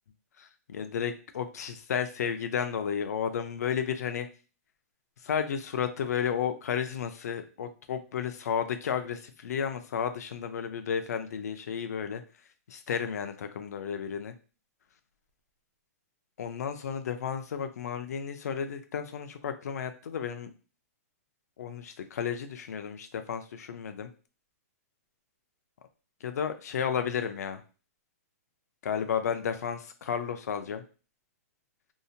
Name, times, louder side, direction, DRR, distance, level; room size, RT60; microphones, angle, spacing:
voice 1, 0.4-4.3 5.2-12.2 12.7-14.3 16.4-20.5 21.6-24.1 26.2-27.6 28.8-30.8, left 7 dB, 90° left, 8 dB, 0.4 m, -32 dB
2.8 x 2.1 x 2.7 m, 0.35 s
hypercardioid pair, 170°, 8 cm